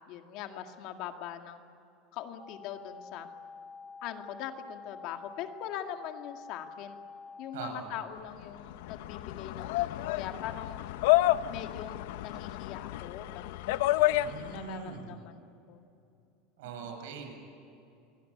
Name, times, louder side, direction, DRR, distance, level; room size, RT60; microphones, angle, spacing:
voice 1, 0.1-1.6 2.1-3.3 4.0-7.0 7.4-10.8 11.5-13.8 14.3-15.8 16.6-16.9, left 10 dB, 45° left, 5 dB, 2.0 m, -42 dB
sound 1, 2.4-7.5, left 5 dB, 10° right, 5.4 m, -48 dB
voice 2, 7.5-8.0 14.2-15.2 16.6-17.3, right 6 dB, 75° right, 4 dB, 7.5 m, -42 dB
sound 2, 8.4-14.8, left 16 dB, 65° left, 0.8 m, -30 dB
28.0 x 23.0 x 8.6 m, 2.8 s
supercardioid pair, 170°, 0 cm